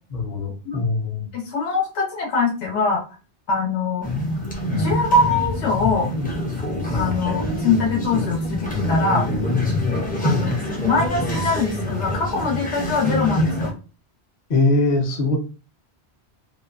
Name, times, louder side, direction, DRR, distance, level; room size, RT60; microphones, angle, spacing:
voice 1, 0.1-1.3 14.5-15.4, left 2 dB, 45° left, 1 dB, 0.7 m, -21 dB
voice 2, 1.3-3.0 3.5-4.1 4.7-6.1 6.9-9.3 10.2-10.5 10.8-13.7, left 4 dB, 80° left, -1 dB, 1.0 m, -22 dB
sound 1, 4.0-13.7, left 1 dB, 15° left, 0.4 m, -25 dB
2.5 x 2.2 x 2.3 m, 0.33 s
omnidirectional pair, 1.1 m